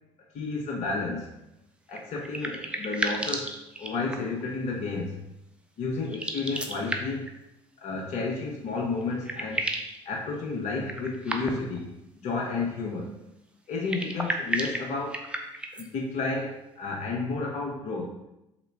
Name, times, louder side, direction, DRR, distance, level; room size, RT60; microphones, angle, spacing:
voice 1, 0.3-1.3 1.9-3.5 3.8-5.2 5.8-7.3 7.8-9.7 10.1-11.9 12.2-13.1 13.7-15.2 15.7-18.2, left 3 dB, 45° left, -1 dB, 0.6 m, -31 dB
sound 1, 1.9-4.4 6.0-7.3 8.7-8.8 9.0-10.0 10.8-11.8 13.7-15.9, right 1 dB, 5° right, 0.4 m, -33 dB
3.2 x 2.9 x 3.3 m, 0.87 s
figure-of-eight pair, 50°, 16 cm